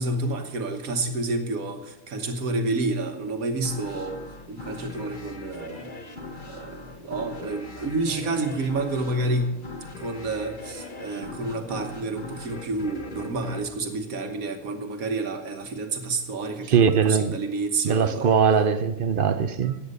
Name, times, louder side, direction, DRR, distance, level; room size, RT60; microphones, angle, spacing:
voice 1, 0.0-4.2 4.5-5.9 6.5-9.5 10.0-18.3, right 2 dB, 80° right, 1.6 m, -29 dB
sound 1, 3.6-14.8, left 3 dB, 35° left, 1.3 m, -41 dB
voice 2, 16.7-17.4 17.8-19.8, right 7 dB, 55° right, 0.6 m, -21 dB
14.5 x 8.7 x 5.3 m
omnidirectional pair, 1.5 m